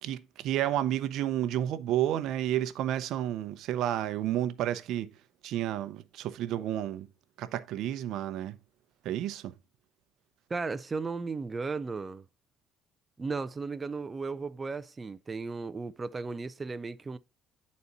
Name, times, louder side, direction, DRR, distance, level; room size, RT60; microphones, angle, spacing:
voice 1, 0.0-5.1 5.4-7.1 7.4-8.6 9.0-9.5, right 12 dB, 70° right, 0.7 m, -31 dB
voice 2, 10.5-12.2 13.2-17.2, right 4 dB, 25° right, 0.5 m, -35 dB
9.5 x 4.2 x 4.0 m
cardioid pair, 100°, 0 cm